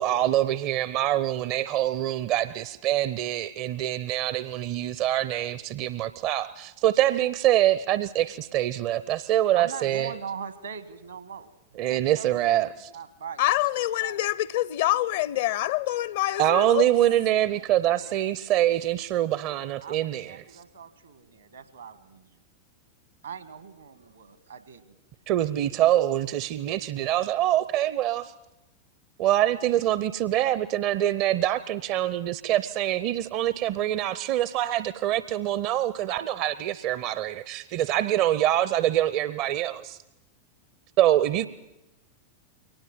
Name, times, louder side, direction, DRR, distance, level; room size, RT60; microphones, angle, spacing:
voice 1, 0.0-10.1 11.8-12.7 16.4-20.4 25.3-28.3 29.2-40.0 41.0-41.5, right 13 dB, 45° right, 0.7 m, -25 dB
voice 2, 9.5-12.6 12.9-13.4 14.0-14.2 16.3-17.2 17.5-18.3 19.8-22.4 23.2-25.0, right 6 dB, 75° right, 1.9 m, -41 dB
voice 3, 13.4-17.0, left 15 dB, 55° left, 0.7 m, -26 dB
23.0 x 19.0 x 7.6 m
figure-of-eight pair, 90°, 0 cm